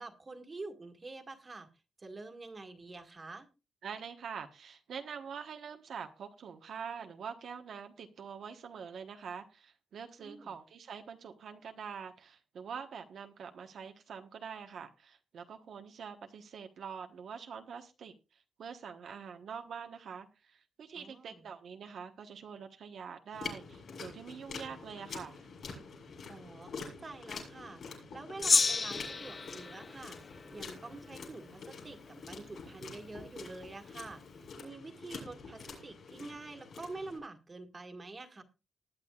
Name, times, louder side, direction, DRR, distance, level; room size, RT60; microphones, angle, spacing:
voice 1, 0.0-1.7 2.0-3.5 10.2-10.5 21.0-21.5 26.3-27.8 28.1-34.2 34.6-38.4, right 3 dB, 25° right, 6 dB, 1.8 m, -47 dB
voice 2, 3.8-18.1 18.6-25.4, right 6 dB, 70° right, 5 dB, 1.2 m, -45 dB
sound 1, 23.3-37.2, left 4 dB, 55° left, 7.2 m, -47 dB
Gong, 28.4-31.1, left 4 dB, 30° left, 0.5 m, -31 dB
19.5 x 10.0 x 2.4 m, 0.28 s
wide cardioid pair, 145°, 0 cm